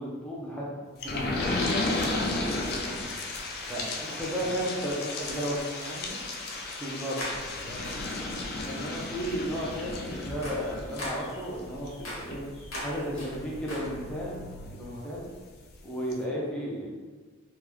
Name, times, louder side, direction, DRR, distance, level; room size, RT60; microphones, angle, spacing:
voice 1, 0.0-1.6 3.7-5.6 6.8-7.2 8.7-12.4 12.8-14.4 14.7-15.2 15.8-16.9, equal, 5° left, -5 dB, 0.6 m, -34 dB
sound 1, 1.0-15.3 15.7-15.8 16.1-16.2, left 2 dB, 50° left, 0.4 m, -34 dB
voice 2, 2.1-2.7 3.6-5.4 5.7-6.3 7.6-8.1 12.7-13.2 14.8-15.2, right 2 dB, 45° right, 0 dB, 0.5 m, -45 dB
sound 2, 6.5-6.8 7.2-8.3 8.7-9.0 9.4-14.3, left 1 dB, 80° left, 1.1 m, -41 dB
3.8 x 2.2 x 2.9 m, 1.4 s
head